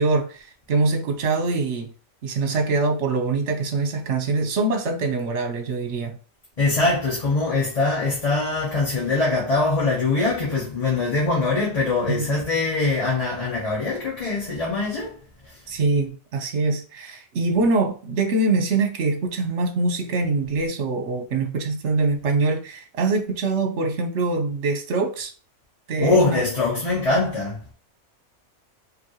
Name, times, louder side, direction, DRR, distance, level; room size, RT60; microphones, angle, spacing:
voice 1, 0.0-1.9 2.2-6.2 12.1-12.3 15.7-25.3 25.9-26.4, right 3 dB, 60° right, 1.2 m, -24 dB
voice 2, 6.6-15.2 26.0-27.7, left 3 dB, 30° left, 1.1 m, -22 dB
5.1 x 2.9 x 3.0 m
omnidirectional pair, 1.4 m